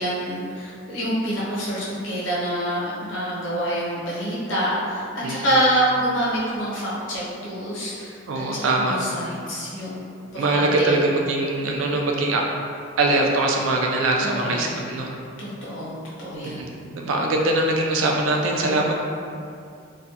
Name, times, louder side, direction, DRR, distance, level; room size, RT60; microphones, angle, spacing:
voice 1, 0.0-11.0 14.2-14.7 15.4-16.7, right 1 dB, 80° left, -7 dB, 0.8 m, -27 dB
voice 2, 5.2-5.6 8.3-9.0 10.4-12.4 13.0-15.1 16.4-18.9, right 2 dB, 85° right, 1 dB, 0.3 m, -22 dB
2.3 x 2.2 x 2.7 m, 2.4 s
head